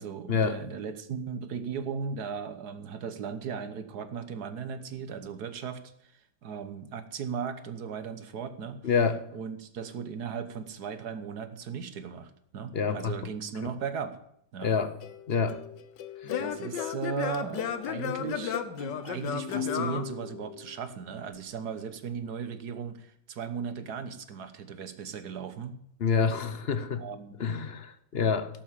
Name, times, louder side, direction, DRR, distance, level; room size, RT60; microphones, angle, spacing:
voice 1, 0.0-8.8 9.3-14.2 14.5-14.7 16.2-25.8 27.0-27.4, right 6 dB, 60° right, 11 dB, 1.5 m, -37 dB
voice 2, 8.8-9.2 12.7-13.1 14.6-14.9 15.3-15.6 16.2-16.3 26.0-27.0 27.4-28.5, left 5 dB, 50° left, 12 dB, 0.8 m, -27 dB
Singing / Plucked string instrument, 15.0-20.9, left 8 dB, 70° left, 1.5 m, -34 dB
17.0 x 7.5 x 7.4 m, 0.73 s
omnidirectional pair, 2.1 m